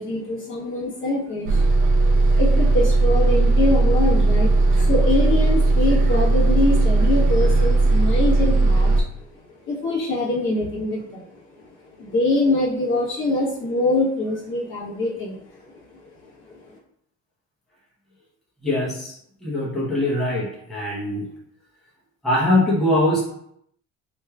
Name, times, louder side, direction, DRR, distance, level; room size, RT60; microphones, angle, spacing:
voice 1, 0.0-1.6 1.9-2.0 2.4-4.5 4.8-9.0 9.7-11.2 12.0-15.4 15.9-16.0 16.5-16.6, left 2 dB, 35° left, -5 dB, 1.2 m, -24 dB
Bus, 1.5-9.0, right 2 dB, 65° right, 0.9 m, -17 dB
voice 2, 18.6-19.1 19.4-21.2 22.2-23.2, left 1 dB, ahead, -9 dB, 0.9 m, -22 dB
4.4 x 3.1 x 2.3 m, 0.73 s
cardioid pair, 155°, 34 cm